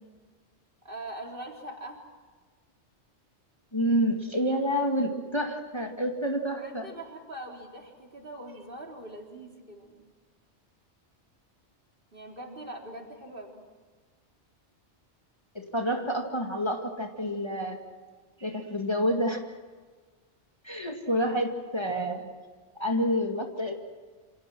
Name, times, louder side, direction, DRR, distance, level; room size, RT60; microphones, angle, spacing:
voice 1, 0.8-2.0 6.6-10.1 12.1-13.6, right 1 dB, 50° right, 0 dB, 4.1 m, -42 dB
voice 2, 3.7-6.9 15.5-17.8 18.4-19.5 20.6-22.3 22.8-23.7, equal, 25° left, 2 dB, 2.2 m, -28 dB
28.5 x 27.5 x 6.2 m, 1.4 s
omnidirectional pair, 1.2 m